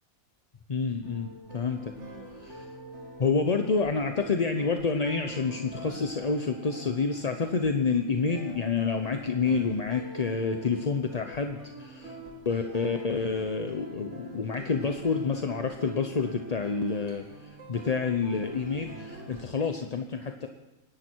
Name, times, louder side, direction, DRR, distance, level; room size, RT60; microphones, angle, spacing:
voice 1, 0.7-1.9 2.4-2.6 3.2-12.1 12.4-20.5, left 4 dB, 35° left, 5 dB, 0.7 m, -28 dB
sound 1, 1.0-19.4, right 1 dB, 55° right, 2.6 m, -45 dB
25.5 x 11.0 x 4.6 m, 1.0 s
omnidirectional pair, 1.4 m